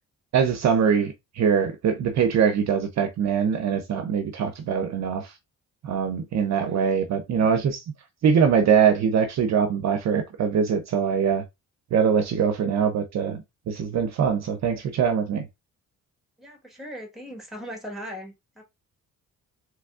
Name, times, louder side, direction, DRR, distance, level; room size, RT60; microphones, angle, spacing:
voice 1, 0.3-5.3 5.8-7.8 8.2-11.4 11.9-15.5, right 7 dB, 55° right, 0.5 m, -23 dB
voice 2, 16.4-18.6, equal, ahead, 1.3 m, -39 dB
3.4 x 3.1 x 2.3 m
cardioid pair, 115°, 34 cm